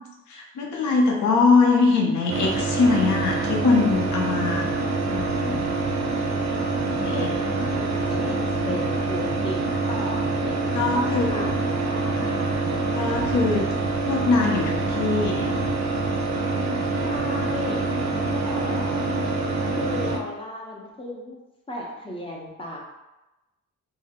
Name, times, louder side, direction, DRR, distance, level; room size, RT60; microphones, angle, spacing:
voice 1, 0.3-4.7 5.1-5.7 7.0-7.3 7.9-8.0 8.6-8.8 10.7-11.5 12.9-13.7 14.0-15.6, left 4 dB, 65° left, 0 dB, 0.7 m, -22 dB
sound 1, 2.3-20.2, right 3 dB, 60° right, 0.5 m, -25 dB
voice 2, 7.1-9.6 9.9-12.8 16.9-17.8 18.1-19.1 19.7-21.4 21.7-22.8, left 2 dB, 15° left, -2 dB, 0.6 m, -35 dB
2.6 x 2.1 x 3.5 m, 1.0 s
cardioid pair, 120°, 31 cm